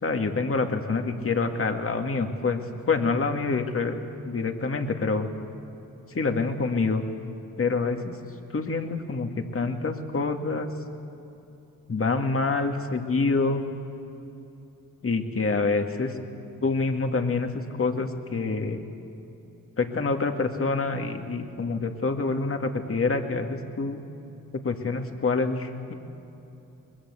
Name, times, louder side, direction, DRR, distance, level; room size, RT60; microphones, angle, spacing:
voice 1, 0.0-2.6 2.9-5.3 6.1-7.0 7.6-8.2 8.5-10.7 11.9-13.6 15.0-16.1 16.6-18.8 19.8-24.0 24.5-25.9, left 3 dB, 40° left, 5 dB, 2.2 m, -26 dB
22.5 x 21.0 x 8.4 m, 2.9 s
cardioid pair, 75°, 36 cm